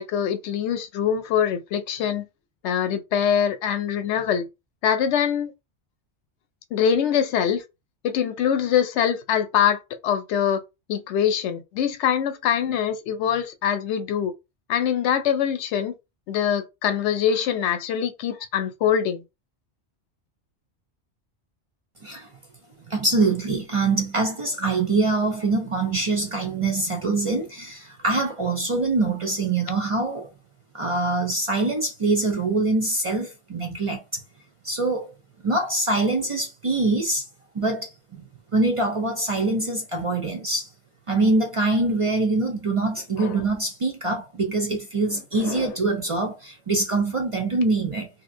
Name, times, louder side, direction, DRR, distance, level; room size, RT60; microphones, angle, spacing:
voice 1, 0.0-2.3 2.6-4.5 4.8-5.5 6.7-7.6 8.0-10.6 10.9-14.3 14.7-15.9 16.3-19.2 43.2-43.3 45.4-45.7, left 8 dB, 80° left, 0.9 m, -23 dB
voice 2, 22.9-30.3 30.7-34.2 34.6-35.1 35.4-37.3 37.5-38.2 38.5-40.7 41.1-48.1, right 3 dB, 50° right, 0.4 m, -24 dB
2.8 x 2.7 x 2.6 m
omnidirectional pair, 1.2 m